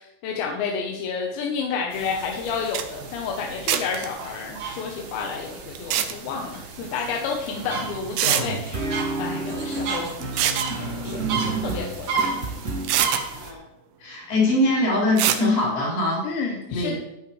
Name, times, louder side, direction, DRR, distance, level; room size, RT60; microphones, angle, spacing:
voice 1, 0.0-8.9 9.2-10.1 10.7-12.8 16.2-17.0, left 5 dB, 75° left, 1 dB, 3.0 m, -30 dB
sound 1, 1.9-13.5, right 5 dB, 60° right, 1.9 m, -34 dB
sound 2, 2.5-2.6 2.7-2.9 3.7-4.1 5.8-6.1 7.5-7.6 8.2-8.4 10.2-10.7 12.2-12.3 12.8-13.2 15.2-15.4, right 11 dB, 80° right, 2.6 m, -23 dB
sound 3, 8.1-13.0, right 3 dB, 45° right, 1.2 m, -30 dB
voice 2, 14.0-16.2 16.7-17.0, left 1 dB, 50° left, -5 dB, 6.5 m, -22 dB
14.0 x 9.7 x 3.3 m, 0.93 s
omnidirectional pair, 5.9 m